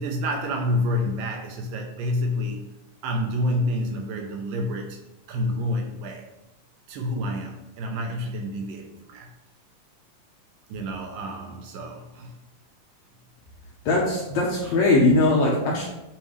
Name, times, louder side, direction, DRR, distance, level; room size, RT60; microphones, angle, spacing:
voice 1, 0.0-2.6 3.0-5.0 5.3-6.3 6.9-9.3 10.7-12.4 14.6-14.7, left 1 dB, 75° right, 2 dB, 2.2 m, -28 dB
voice 2, 13.9-15.9, left 2 dB, 70° left, -3 dB, 1.7 m, -20 dB
8.9 x 3.4 x 3.2 m, 0.94 s
omnidirectional pair, 4.0 m